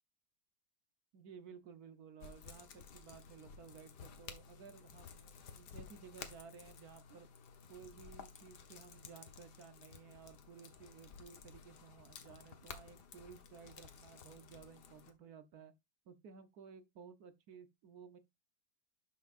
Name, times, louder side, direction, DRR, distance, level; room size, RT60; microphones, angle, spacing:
voice 1, 1.1-7.3 7.7-15.7 16.1-18.2, right 6 dB, 60° right, 1.2 m, -56 dB
sound 1, 2.2-15.1, left 6 dB, 60° left, 1.6 m, -54 dB
11.5 x 5.8 x 2.5 m
omnidirectional pair, 2.1 m